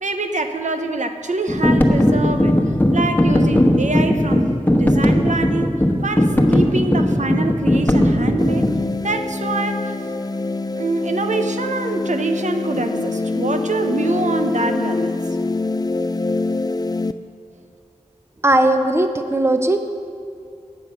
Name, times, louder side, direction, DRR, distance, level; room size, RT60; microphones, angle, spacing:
voice 1, 0.0-5.8 6.0-8.7 9.0-10.0 10.7-15.2, right 3 dB, 80° right, 6 dB, 0.8 m, -25 dB
sound 1, 1.5-8.8, left 1 dB, 15° left, 1.1 m, -17 dB
sound 2, 8.4-17.1, left 3 dB, 30° left, 0.4 m, -24 dB
voice 2, 18.4-19.8, right 1 dB, 20° right, 7 dB, 0.8 m, -17 dB
14.5 x 8.9 x 5.6 m, 2.4 s
wide cardioid pair, 70°, 12 cm